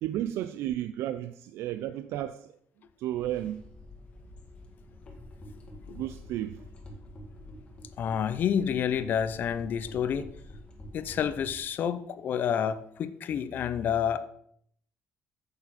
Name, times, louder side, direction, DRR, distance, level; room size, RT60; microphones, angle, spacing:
voice 1, 0.0-2.5 3.0-3.6 5.9-6.6, right 12 dB, 80° right, 0.4 m, -33 dB
sound 1, 3.1-11.6, left 1 dB, 25° left, 1.6 m, -47 dB
voice 2, 8.0-10.3 10.9-14.2, left 8 dB, 45° left, 0.5 m, -29 dB
8.7 x 6.8 x 4.1 m
cardioid pair, 160°, 4 cm